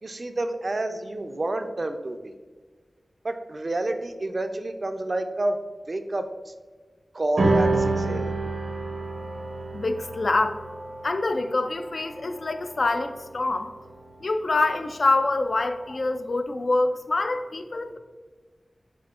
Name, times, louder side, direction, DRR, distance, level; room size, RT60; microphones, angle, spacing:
voice 1, 0.0-2.3 3.2-5.6 5.9-6.5 7.1-8.3, right 2 dB, 50° right, 7 dB, 0.4 m, -29 dB
sound 1, 7.4-14.1, right 2 dB, 85° right, 0.7 m, -28 dB
voice 2, 9.7-10.6 11.0-13.7 14.2-18.0, left 2 dB, 65° left, 7 dB, 0.3 m, -25 dB
7.4 x 2.5 x 2.4 m, 1.4 s
wide cardioid pair, 65°, 0 cm